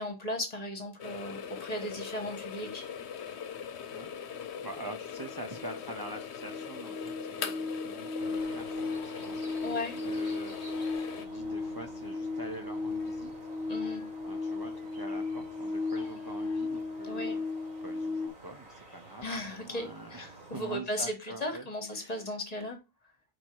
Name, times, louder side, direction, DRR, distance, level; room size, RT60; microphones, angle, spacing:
voice 1, 0.0-2.8 9.6-10.0 13.7-14.0 17.0-17.4 19.2-22.8, left 1 dB, 35° left, 1.4 m, -36 dB
sound 1, 1.0-11.3, left 7 dB, 80° left, 1.0 m, -41 dB
voice 2, 3.9-9.4 10.0-13.3 14.2-17.5 17.8-22.3, right 2 dB, 30° right, 0.5 m, -45 dB
sound 2, 4.7-4.8 5.1-18.3, left 3 dB, 60° left, 0.9 m, -36 dB
sound 3, 8.2-20.8, right 2 dB, 50° right, 2.2 m, -51 dB
4.7 x 4.5 x 4.5 m
omnidirectional pair, 1.1 m